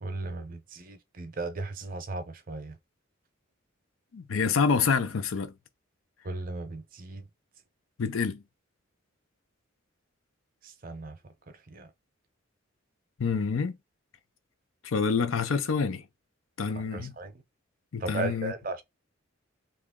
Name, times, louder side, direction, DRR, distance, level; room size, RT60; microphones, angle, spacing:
voice 1, 0.0-2.7 6.2-7.3 10.6-11.2 11.7-11.9 16.7-17.4 18.0-18.8, right 2 dB, 45° right, 0.6 m, -36 dB
voice 2, 4.1-5.5 8.0-8.4 13.2-13.8 14.8-16.0 16.6-17.1 17.9-18.5, left 5 dB, 80° left, 0.5 m, -27 dB
2.9 x 2.5 x 3.6 m
head